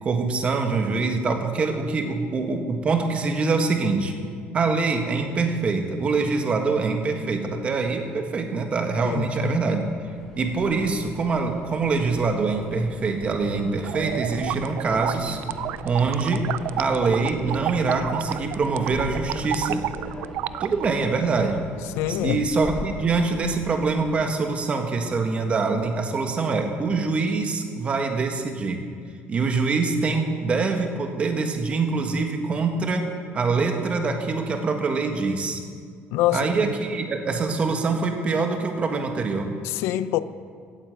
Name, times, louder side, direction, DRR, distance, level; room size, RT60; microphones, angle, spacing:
voice 1, 0.0-4.1 4.5-9.8 10.3-15.4 15.8-16.5 16.8-19.8 20.6-21.6 22.1-28.9 29.3-33.1 33.3-35.6 36.3-39.5, right 4 dB, 30° right, 1.6 m, -24 dB
voice 2, 9.0-9.6 22.0-22.4 36.1-36.5 39.6-40.2, left 14 dB, 80° left, 0.6 m, -25 dB
Subway metro underground, 9.9-24.2, left 1 dB, 10° left, 2.0 m, -41 dB
sound 1, 13.9-20.9, right 13 dB, 60° right, 0.4 m, -31 dB
16.5 x 8.8 x 7.8 m
cardioid pair, 155°, 4 cm